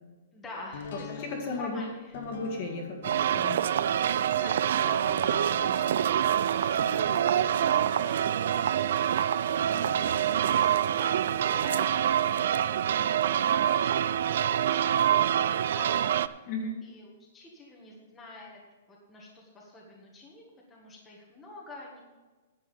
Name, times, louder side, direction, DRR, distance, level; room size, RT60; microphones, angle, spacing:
voice 1, 0.3-2.2 4.3-15.0 15.4-16.5 16.8-18.6 18.9-22.0, left 2 dB, 10° left, -3 dB, 1.7 m, -47 dB
sound 1, 0.7-13.7 14.0-14.1, left 5 dB, 60° left, 1.7 m, -47 dB
voice 2, 1.1-1.8 2.1-3.6 16.5-16.8, left 3 dB, 35° left, 1 dB, 1.9 m, -35 dB
sound 2, 3.0-16.3, right 10 dB, 65° right, 0.4 m, -26 dB
sound 3, 6.4-11.5, right 5 dB, 90° right, 2.7 m, -56 dB
10.0 x 7.5 x 7.0 m, 1.3 s
hypercardioid pair, 170°, 0 cm